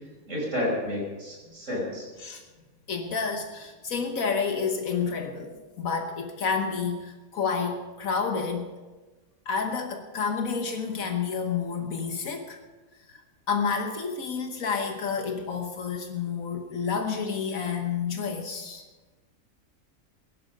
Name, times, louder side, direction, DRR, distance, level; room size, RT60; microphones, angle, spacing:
voice 1, 0.3-2.1, left 1 dB, 60° right, -2 dB, 5.6 m, -30 dB
voice 2, 2.9-8.7 9.5-12.6 13.1-13.2 13.5-18.8, left 5 dB, 75° left, 5 dB, 1.5 m, -29 dB
17.5 x 11.0 x 5.3 m, 1.2 s
omnidirectional pair, 1.5 m